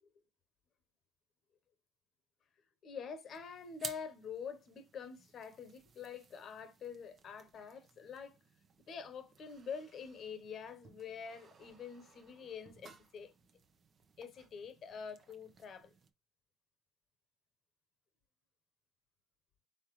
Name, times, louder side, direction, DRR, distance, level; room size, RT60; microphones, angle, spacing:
voice 1, 2.8-8.4 8.9-13.3 14.2-15.9, left 6 dB, 50° left, 1.0 m, -46 dB
sound 1, 3.3-16.1, right 5 dB, 40° right, 0.8 m, -56 dB
4.3 x 3.6 x 3.1 m
supercardioid pair, 85°, 0 cm